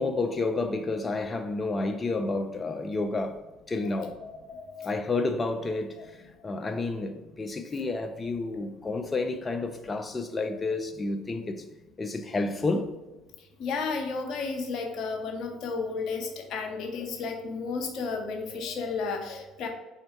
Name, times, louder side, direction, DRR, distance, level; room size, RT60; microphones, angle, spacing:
voice 1, 0.0-4.1 4.8-11.6 12.0-12.9, left 3 dB, 30° left, 0.5 m, -30 dB
voice 2, 3.9-4.9 6.0-6.1 8.6-8.7 13.6-19.7, left 4 dB, 60° left, 0.9 m, -33 dB
4.3 x 2.8 x 4.5 m
hypercardioid pair, 60°, 0 cm